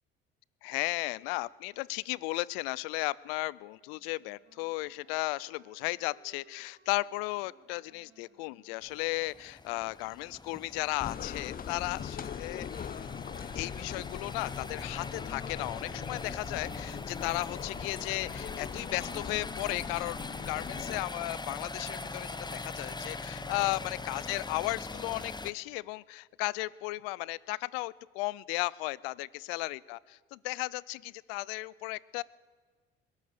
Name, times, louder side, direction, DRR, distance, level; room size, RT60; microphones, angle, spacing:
voice 1, 0.6-12.7 13.6-32.2, left 22 dB, 75° left, 23 dB, 0.5 m, -35 dB
Wind instrument woodwind instrument, 3.9-9.3, right 6 dB, 50° right, 3.2 m, -65 dB
sound 1, 8.8-25.5, left 3 dB, 15° left, 0.9 m, -42 dB
sound 2, 11.0-21.0, left 8 dB, 30° left, 0.6 m, -41 dB
21.0 x 18.5 x 6.7 m, 1.5 s
hypercardioid pair, 55°, 29 cm